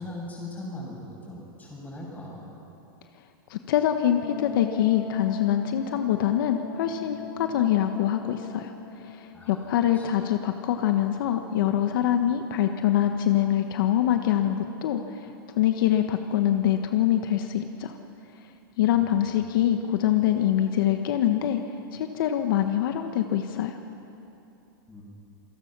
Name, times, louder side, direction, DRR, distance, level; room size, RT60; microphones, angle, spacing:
voice 1, 0.0-2.4 9.3-9.7 9.9-10.1 18.8-19.3 24.9-25.0, left 1 dB, 15° left, -3 dB, 7.0 m, -40 dB
voice 2, 3.5-15.3 15.6-18.0 18.8-21.6 21.9-23.8, left 11 dB, 65° left, 6 dB, 1.2 m, -24 dB
Wind instrument woodwind instrument, 4.2-9.7, left 9 dB, 50° left, 1.9 m, -40 dB
27.5 x 17.5 x 6.1 m, 2.9 s
supercardioid pair, 135°, 12 cm